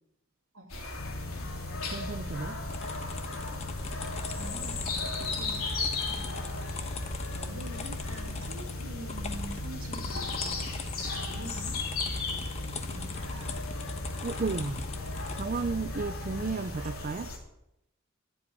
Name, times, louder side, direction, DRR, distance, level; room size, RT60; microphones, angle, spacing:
sound 1, 0.7-17.4, left 3 dB, 80° left, 3.4 m, -37 dB
sound 2, 0.9-16.5, left 2 dB, 55° left, 0.7 m, -40 dB
voice 1, 1.2-1.6 4.3-5.7 6.1-6.9 7.4-10.7 11.0-12.4 12.9-13.6 16.4-16.9, right 1 dB, 75° right, 3 dB, 2.5 m, -46 dB
voice 2, 1.9-2.6 14.2-14.9 15.3-17.3, right 4 dB, 40° right, 9 dB, 0.5 m, -33 dB
sound 3, 2.7-15.5, left 3 dB, 30° left, 1.1 m, -41 dB
12.0 x 8.1 x 9.3 m, 0.82 s
head